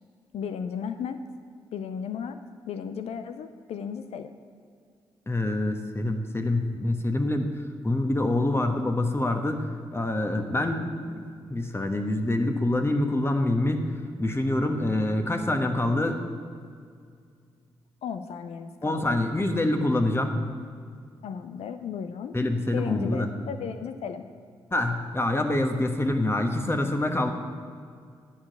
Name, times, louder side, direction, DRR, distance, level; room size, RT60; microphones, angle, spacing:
voice 1, 0.3-1.2 1.7-2.4 2.7-4.3 18.0-19.2 21.2-22.3 22.7-24.2, left 7 dB, 65° left, 9 dB, 0.5 m, -35 dB
voice 2, 5.3-7.5 7.8-9.7 9.9-13.8 14.2-16.2 18.8-20.4 22.3-23.3 24.7-27.3, left 1 dB, 20° left, 5 dB, 1.2 m, -26 dB
10.0 x 4.8 x 8.1 m, 2.2 s
hypercardioid pair, 40°, 11 cm